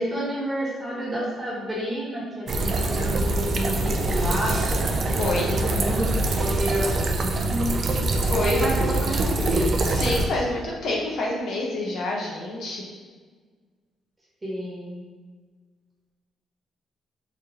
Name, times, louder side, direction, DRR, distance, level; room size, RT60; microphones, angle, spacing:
voice 1, 0.0-4.6 5.1-6.9 7.2-7.8 8.2-9.9 14.4-15.0, equal, 15° right, -6 dB, 1.4 m, -30 dB
sound 1, 2.5-10.3, right 2 dB, 50° right, 0.4 m, -24 dB
voice 2, 5.0-5.5 8.2-8.6 9.8-12.9, left 2 dB, 65° left, -3 dB, 1.0 m, -28 dB
3.7 x 2.7 x 3.7 m, 1.5 s
cardioid pair, 90°, 0 cm